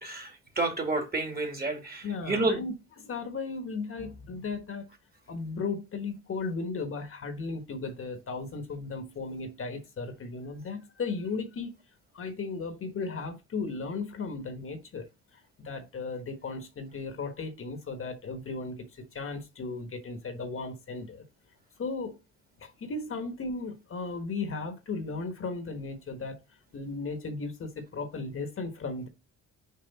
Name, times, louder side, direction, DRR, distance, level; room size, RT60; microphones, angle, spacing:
voice 1, 0.0-2.6, right 2 dB, 30° right, 2.2 m, -30 dB
voice 2, 2.0-2.7 3.0-4.9 5.3-11.7 12.1-15.1 15.6-21.2 21.8-22.2 22.6-26.4 26.7-29.1, left 4 dB, 45° left, 1.3 m, -36 dB
5.7 x 4.9 x 4.0 m
cardioid pair, 90°, 30 cm